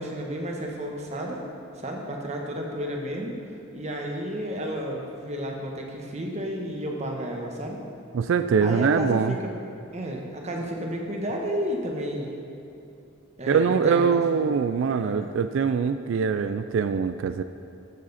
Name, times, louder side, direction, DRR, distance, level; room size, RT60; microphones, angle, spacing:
voice 1, 0.0-1.4 1.8-3.4 3.7-7.8 8.6-9.6 9.9-12.3 13.4-15.3, equal, 35° right, 0 dB, 1.3 m, -32 dB
voice 2, 8.1-9.4 13.5-17.4, right 6 dB, 65° right, 10 dB, 0.3 m, -23 dB
13.5 x 7.6 x 4.2 m, 2.7 s
head